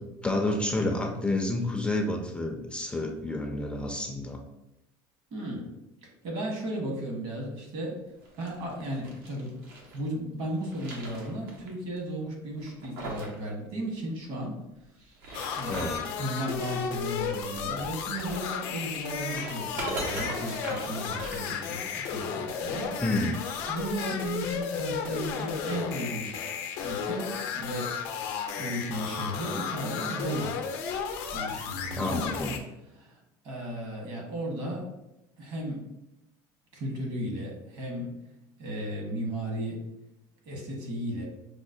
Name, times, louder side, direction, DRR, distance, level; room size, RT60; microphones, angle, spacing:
voice 1, 0.2-4.4 15.7-16.2 23.0-23.4 31.9-32.6, left 2 dB, 10° left, 2 dB, 0.4 m, -29 dB
voice 2, 5.3-5.7 6.0-8.0 8.4-9.5 9.9-14.6 15.0-15.2 15.5-15.8 16.2-22.9 23.7-26.3 26.8-28.0 28.6-30.6 31.3-32.3 33.0-33.2 33.4-34.9 35.4-35.9 36.7-38.2 38.6-39.8 40.4-41.2, right 1 dB, 60° right, 0 dB, 1.2 m, -35 dB
sound 1, 8.2-10.0 10.4-11.7 12.0-12.1 12.6-13.4 13.6-13.7 15.0-16.1 18.0-22.1, right 2 dB, 90° right, 0.9 m, -40 dB
sound 2, 15.3-32.6, left 6 dB, 70° left, 0.5 m, -34 dB
4.9 x 2.1 x 2.6 m, 0.90 s
supercardioid pair, 120°, 11 cm